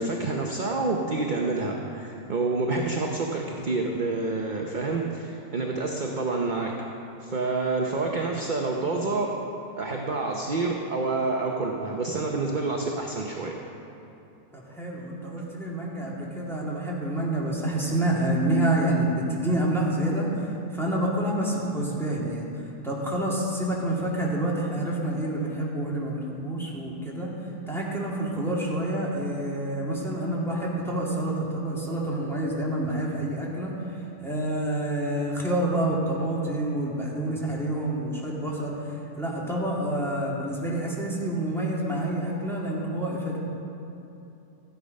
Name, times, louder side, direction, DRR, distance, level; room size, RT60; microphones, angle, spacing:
voice 1, 0.0-6.7 7.2-9.3 9.8-13.6, right 3 dB, 40° right, 0 dB, 0.9 m, -28 dB
voice 2, 14.5-20.5 20.7-22.5 22.8-27.3 27.7-33.7 34.2-43.4, right 1 dB, ahead, -5 dB, 2.2 m, -28 dB
14.0 x 10.5 x 5.3 m, 2.8 s
omnidirectional pair, 1.6 m